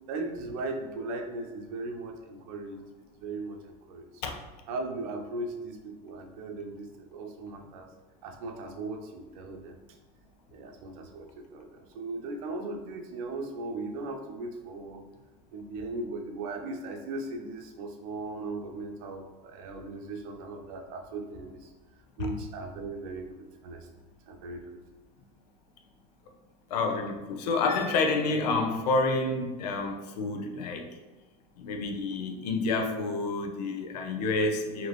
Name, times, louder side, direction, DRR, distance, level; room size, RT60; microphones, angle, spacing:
voice 1, 0.1-2.8 3.2-4.4 4.7-7.9 8.2-9.8 10.5-15.0 15.5-21.7 22.2-23.9 24.3-24.7, right 2 dB, 65° right, 4 dB, 0.8 m, -38 dB
voice 2, 26.7-30.9 31.6-34.9, left 3 dB, 80° left, 4 dB, 0.7 m, -29 dB
4.9 x 3.0 x 3.0 m, 1.2 s
supercardioid pair, 120°, 20 cm